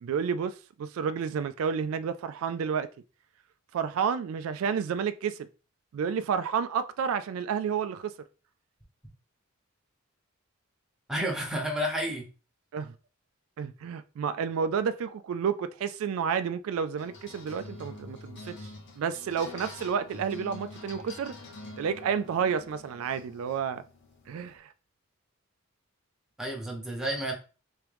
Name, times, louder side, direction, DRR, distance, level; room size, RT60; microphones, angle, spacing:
voice 1, 0.0-2.9 3.7-5.5 5.9-8.1 12.7-12.9 13.6-21.3 21.8-23.8 24.3-24.7, right 7 dB, 80° right, 0.3 m, -30 dB
voice 2, 11.1-12.3 26.4-27.3, equal, 5° right, 0.9 m, -31 dB
sound 1, 17.0-24.6, left 2 dB, 55° left, 0.9 m, -46 dB
3.5 x 3.0 x 3.4 m
head